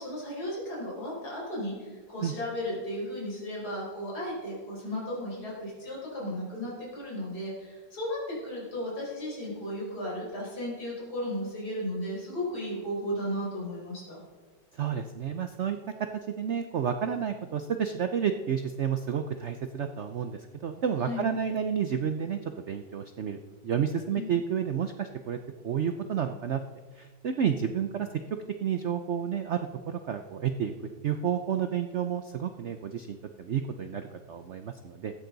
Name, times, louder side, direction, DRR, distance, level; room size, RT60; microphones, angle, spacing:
voice 1, 0.0-14.2 21.0-21.3 24.1-24.3, left 1 dB, 55° left, -5 dB, 5.4 m, -35 dB
voice 2, 14.7-15.8 16.4-22.4 22.7-23.4 23.6-25.4 25.6-26.6 27.0-28.1 28.6-30.7 31.0-35.1, right 8 dB, 90° right, 8 dB, 0.6 m, -30 dB
16.0 x 13.5 x 4.0 m, 1.4 s
omnidirectional pair, 2.1 m